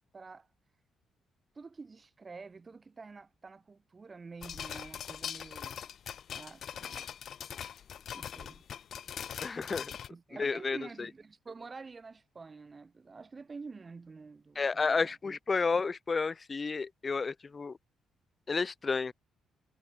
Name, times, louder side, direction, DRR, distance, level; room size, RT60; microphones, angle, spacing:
voice 1, 0.1-0.5 1.5-5.8 6.3-7.1 8.1-8.6 10.1-15.4, right 4 dB, 30° right, 7.8 m, -48 dB
sound 1, 4.4-10.1, left 9 dB, 60° left, 0.6 m, -42 dB
voice 2, 9.4-9.9 10.4-11.1 14.6-17.8 18.5-19.1, left 4 dB, 30° left, 1.0 m, -31 dB
cardioid pair, 90°, 0 cm